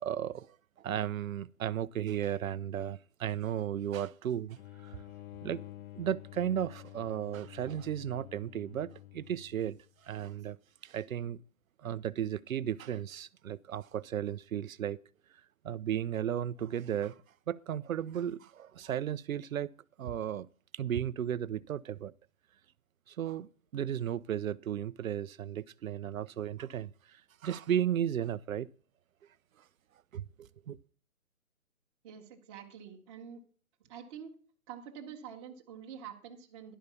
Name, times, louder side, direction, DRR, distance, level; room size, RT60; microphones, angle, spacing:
voice 1, 0.0-0.6 0.8-4.6 4.8-5.0 5.4-5.6 6.0-9.8 10.0-10.6 10.8-11.4 11.8-15.0 15.6-17.1 17.5-19.7 20.0-20.5 20.7-22.1 23.1-26.9 27.4-28.7 30.1-30.8, right 10 dB, 75° right, 0.6 m, -34 dB
sound 1, 4.6-9.9, left 14 dB, 75° left, 0.6 m, -49 dB
voice 2, 32.0-33.4 33.8-34.3 34.7-36.7, right 8 dB, 20° right, 1.2 m, -47 dB
11.0 x 5.3 x 6.8 m
hypercardioid pair, 150°, 42 cm